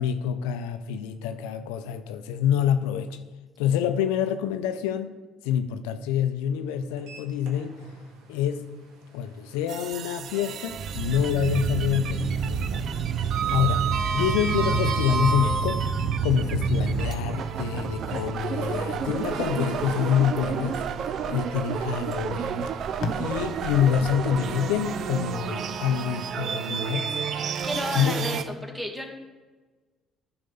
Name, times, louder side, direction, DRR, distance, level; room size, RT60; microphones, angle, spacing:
voice 1, 0.0-3.2 3.6-5.1 5.4-7.8 8.3-8.6 9.1-12.9 13.5-15.8 16.2-20.8 21.3-22.7 23.1-27.1 27.9-28.3, left 9 dB, 85° left, 0.5 m, -26 dB
Sliding door, 7.0-8.0 8.3-8.5 10.2-11.2 11.5-11.9 12.1-16.2 16.9-22.1, right 5 dB, 80° right, 1.4 m, -33 dB
sound 1, 9.7-28.4, right 7 dB, 60° right, 0.4 m, -30 dB
Packing tape duct tape, 19.7-21.3 22.0-22.1 22.4-25.4 25.8-26.0, left 3 dB, 65° left, 0.9 m, -40 dB
voice 2, 27.6-29.1, equal, 15° right, 1.9 m, -32 dB
10.5 x 4.3 x 5.5 m
supercardioid pair, 65°, 0 cm